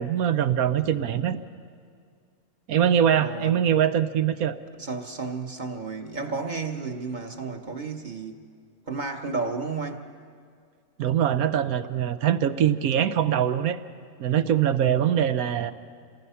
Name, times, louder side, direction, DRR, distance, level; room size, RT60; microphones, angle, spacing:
voice 1, 0.0-1.4 2.7-4.6 11.0-13.8 14.2-15.7, right 9 dB, 75° right, 11 dB, 1.2 m, -23 dB
voice 2, 3.2-3.6 4.8-8.4 8.9-10.0 14.9-15.2, right 4 dB, 35° right, 4 dB, 1.2 m, -32 dB
28.0 x 19.5 x 5.7 m, 2.2 s
omnidirectional pair, 1.6 m